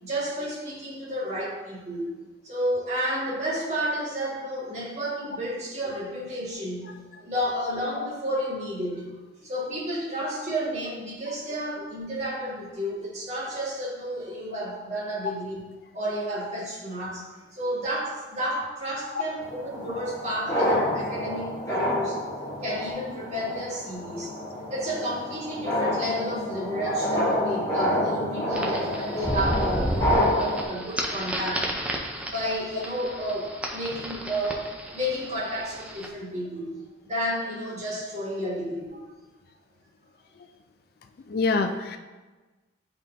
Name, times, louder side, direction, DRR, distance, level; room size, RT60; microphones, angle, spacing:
voice 1, 0.0-2.1 2.4-15.6 15.9-17.3 17.5-22.2 22.6-24.3 24.7-31.7 32.2-34.7 34.9-36.7 37.0-39.0, equal, 40° right, -6 dB, 1.6 m, -31 dB
sound 1, 19.4-30.6, equal, 20° left, 1.3 m, -28 dB
sound 2, 28.5-36.1, equal, 5° right, 0.5 m, -32 dB
voice 2, 41.3-42.0, left 3 dB, 55° left, 7 dB, 0.4 m, -26 dB
10.5 x 3.8 x 2.6 m, 1.3 s
head